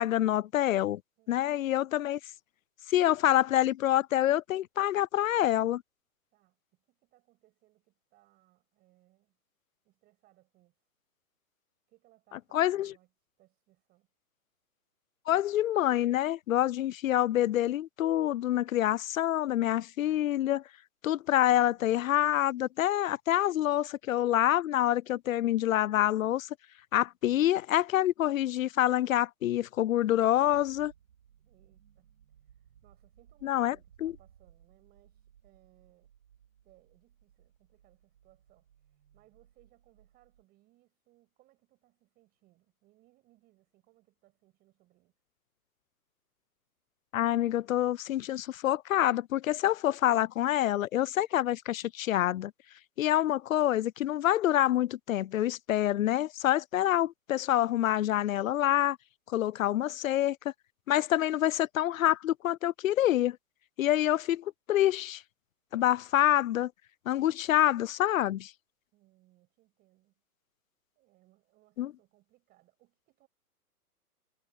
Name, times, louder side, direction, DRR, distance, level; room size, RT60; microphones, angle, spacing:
voice 1, 0.0-1.0 1.3-2.2 2.9-5.8 12.5-12.9 15.3-20.6 21.0-26.5 26.9-30.9 33.4-33.8 34.0-34.1 47.1-52.5 53.0-59.0 59.3-60.5 60.9-63.4 63.8-65.2 65.7-66.7 67.1-68.5 71.8-71.9, left 13 dB, 60° left, 0.5 m, -27 dB
voice 2, 1.2-1.5 6.3-9.4 9.8-10.9 11.9-13.1 13.4-14.1 31.5-32.1 32.4-36.1 36.6-45.1 68.9-70.1 71.0-73.3, right 17 dB, 20° right, 7.2 m, -67 dB
sound 1, 30.3-40.4, right 9 dB, 65° right, 3.2 m, -62 dB
hypercardioid pair, 165°, 46 cm